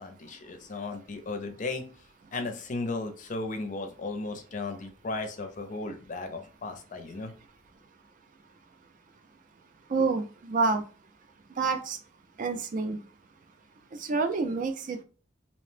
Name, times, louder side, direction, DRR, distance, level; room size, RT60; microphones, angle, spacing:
voice 1, 0.0-1.9 2.3-7.3, left 3 dB, 45° left, 7 dB, 0.5 m, -35 dB
voice 2, 9.9-10.8 11.6-12.0 12.4-13.0 13.9-15.0, right 4 dB, 45° right, 6 dB, 0.4 m, -28 dB
2.7 x 2.1 x 3.2 m, 0.37 s
head